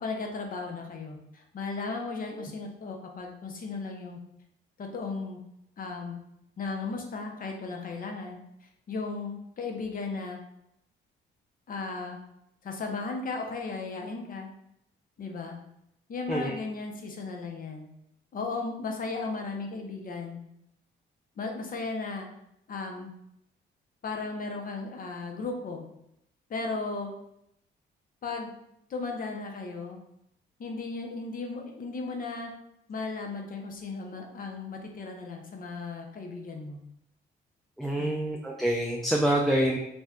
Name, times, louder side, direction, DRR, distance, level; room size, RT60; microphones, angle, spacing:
voice 1, 0.0-4.2 4.8-5.4 5.8-6.2 6.6-8.4 8.9-10.4 11.7-12.2 12.6-14.5 15.2-15.6 16.1-17.8 18.3-20.4 21.4-22.3 22.7-23.1 24.0-25.8 26.5-27.1 28.2-28.5 28.9-30.0 30.6-32.5 32.9-36.8 38.0-38.3, left 3 dB, 45° left, 2 dB, 0.6 m, -35 dB
voice 2, 37.8-39.8, right 1 dB, ahead, -1 dB, 0.3 m, -26 dB
2.6 x 2.2 x 3.5 m, 0.77 s
cardioid pair, 90°, 20 cm